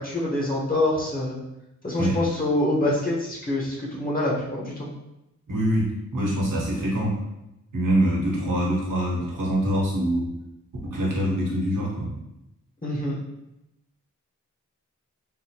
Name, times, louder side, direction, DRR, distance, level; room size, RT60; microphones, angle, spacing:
voice 1, 0.0-1.3 1.8-4.9 12.8-13.1, left 1 dB, 30° left, -5 dB, 1.1 m, -25 dB
voice 2, 5.5-7.2 7.7-10.3 10.8-12.1, equal, 85° right, -4 dB, 1.1 m, -24 dB
3.7 x 2.7 x 2.8 m, 0.89 s
wide cardioid pair, 75°, 31 cm